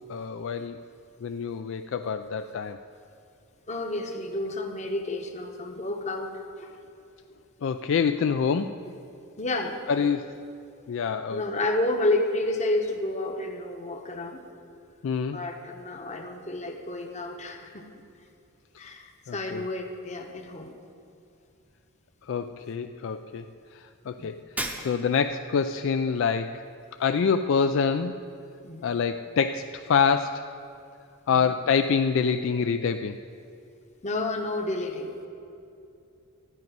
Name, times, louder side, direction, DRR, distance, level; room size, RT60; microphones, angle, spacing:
voice 1, 0.1-0.8 1.2-2.8 7.6-8.7 9.9-10.3 10.9-11.4 15.0-15.4 19.3-19.6 22.3-23.5 23.7-24.4 24.8-26.6 27.0-28.2 28.8-30.4 31.3-33.2, left 6 dB, 55° left, 8 dB, 0.3 m, -26 dB
voice 2, 3.7-6.7 8.8-9.0 9.4-10.1 11.3-14.5 15.3-17.9 18.8-20.7 24.2-24.3 28.6-29.0 31.3-31.5 34.0-35.3, left 2 dB, 30° left, 4 dB, 0.9 m, -30 dB
Shatter, 24.6-25.4, right 1 dB, 5° right, 0.7 m, -34 dB
13.5 x 5.3 x 9.2 m, 2.6 s
head